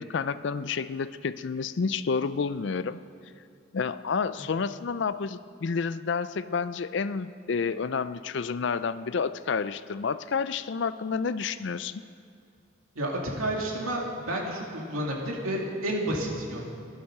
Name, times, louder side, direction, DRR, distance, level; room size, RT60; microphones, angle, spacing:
voice 1, 0.0-3.0 3.7-12.0, left 5 dB, 55° left, 14 dB, 0.4 m, -30 dB
voice 2, 12.9-16.7, right 1 dB, 90° right, -1 dB, 2.6 m, -30 dB
15.0 x 11.5 x 6.6 m, 2.5 s
head